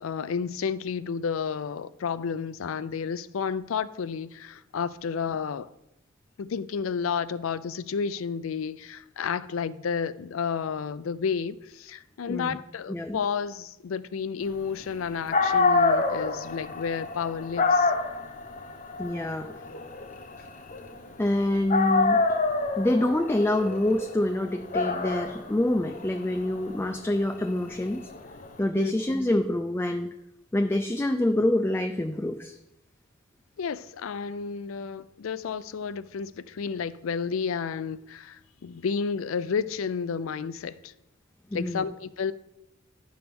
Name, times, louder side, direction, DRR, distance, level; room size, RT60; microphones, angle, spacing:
voice 1, 0.0-5.7 6.4-17.9 28.7-28.9 33.6-40.9 41.5-42.3, left 6 dB, 80° left, 0.4 m, -31 dB
voice 2, 12.9-13.2 19.0-19.5 21.2-22.2 22.8-28.1 28.6-30.1 30.5-32.6 41.5-41.8, left 1 dB, 10° left, 0.4 m, -26 dB
Dog, 15.0-15.1 15.3-21.3 21.7-28.5, left 3 dB, 40° left, 0.8 m, -27 dB
10.5 x 3.5 x 6.0 m
head